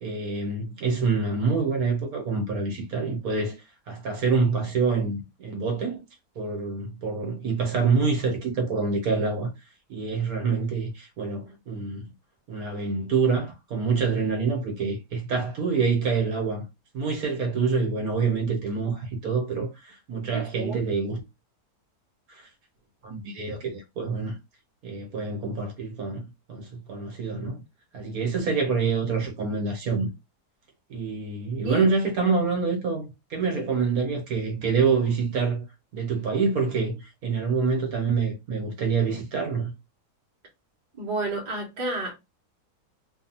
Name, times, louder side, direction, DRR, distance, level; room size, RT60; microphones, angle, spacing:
voice 1, 0.0-3.6 3.9-6.0 6.3-9.5 9.9-12.1 12.5-16.6 16.9-21.2 22.3-22.5 23.0-24.3 24.8-27.6 27.9-30.1 30.9-35.6 35.9-39.7, right 4 dB, 65° right, 1.3 m, -26 dB
voice 2, 20.3-20.8 31.6-31.9 41.0-42.1, right 2 dB, 35° right, 0.8 m, -30 dB
3.0 x 2.2 x 2.7 m
omnidirectional pair, 1.7 m